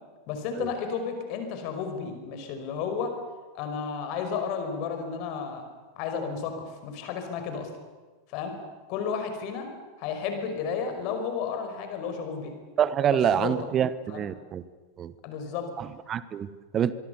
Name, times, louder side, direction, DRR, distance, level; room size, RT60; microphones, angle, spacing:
voice 1, 0.3-3.1 3.5-5.7 6.0-7.7 8.3-8.6 8.9-9.7 10.0-12.5 13.1-13.5 14.1-14.3 15.2-15.7, left 6 dB, 45° left, 5.2 m, -32 dB
voice 2, 12.8-14.6 15.0-15.1 15.8-16.9, right 9 dB, 25° right, 1.1 m, -26 dB
25.0 x 23.5 x 7.0 m
figure-of-eight pair, 90°, 0 cm